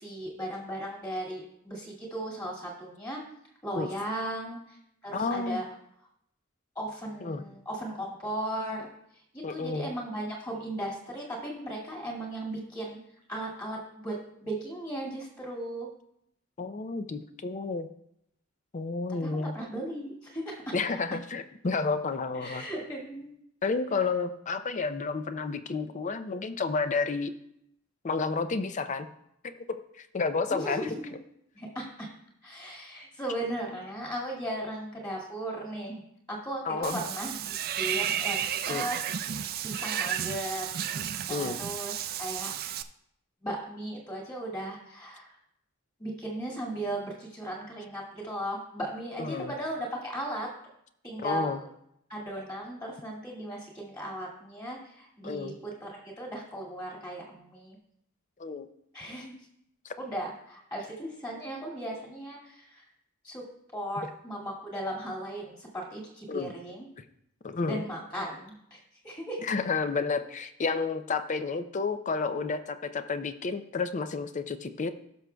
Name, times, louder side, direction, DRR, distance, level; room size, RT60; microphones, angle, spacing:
voice 1, 0.0-3.2 3.6-4.8 5.0-5.6 6.8-8.9 9.3-13.0 13.3-14.1 14.4-15.9 19.2-20.8 22.3-23.3 30.5-31.1 31.5-32.1 32.4-36.0 36.3-38.4 38.6-39.0 39.6-40.7 41.3-41.9 42.2-42.5 43.4-45.3 46.0-50.5 51.0-51.5 52.1-57.8 58.9-59.4 60.0-62.8 63.2-63.4 63.7-66.9 67.7-68.8 69.0-69.5, right 1 dB, 20° left, -3 dB, 2.1 m, -36 dB
voice 2, 5.1-5.6 7.2-7.4 9.4-9.9 16.6-17.9 18.7-19.5 20.7-22.6 23.6-27.3 28.0-29.1 29.4-30.9 36.6-37.0 38.7-38.9 41.3-41.6 49.2-49.5 51.2-51.6 55.2-55.5 58.4-58.7 59.8-59.9 66.3-66.5 67.4-67.8 69.4-74.9, left 4 dB, 35° left, 10 dB, 0.5 m, -31 dB
Water / Bathtub (filling or washing), 36.8-42.8, right 9 dB, 45° right, 0.4 m, -32 dB
18.0 x 6.1 x 2.3 m, 0.76 s
head